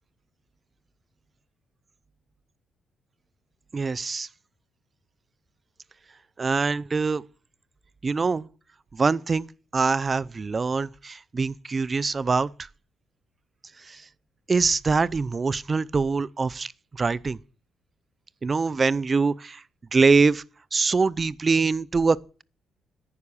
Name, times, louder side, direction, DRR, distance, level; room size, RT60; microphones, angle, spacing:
voice 1, 3.7-4.3 6.4-7.2 8.0-8.5 8.9-9.5 9.7-12.5 13.9-14.0 14.5-17.4 18.4-19.6 19.9-20.4 20.7-22.4, right 4 dB, 30° right, 0.6 m, -24 dB
10.5 x 9.8 x 7.0 m
cardioid pair, 90°, 0 cm